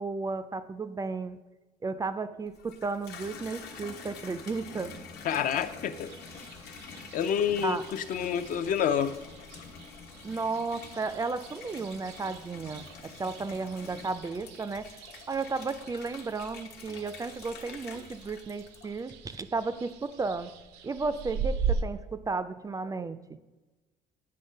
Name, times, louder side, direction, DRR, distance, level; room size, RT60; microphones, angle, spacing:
voice 1, 0.0-1.4 1.8-4.9 7.6-7.8 10.2-14.9 15.3-20.5 20.8-23.2, right 4 dB, 20° right, 12 dB, 0.4 m, -33 dB
Water tap faucet / Bathtub (filling or washing), 2.5-19.4 19.9-20.4, left 5 dB, 75° left, 1.1 m, -47 dB
voice 2, 5.2-6.1 7.1-9.2, left 8 dB, 55° left, 11 dB, 0.5 m, -28 dB
sound 1, 6.0-21.8, right 5 dB, 85° right, 0.6 m, -40 dB
8.6 x 3.2 x 5.5 m, 1.2 s
cardioid pair, 110°, 17 cm